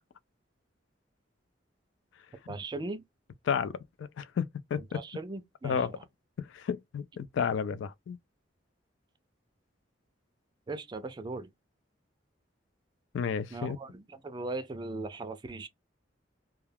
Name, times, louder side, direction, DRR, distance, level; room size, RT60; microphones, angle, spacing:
voice 1, 2.5-3.0 4.9-5.8 10.7-11.5 13.5-15.7, right 2 dB, 25° right, 0.4 m, -38 dB
voice 2, 3.5-5.0 5.6-5.9 6.4-8.2 13.1-13.8, left 7 dB, 70° left, 0.3 m, -32 dB
2.3 x 2.2 x 3.2 m
head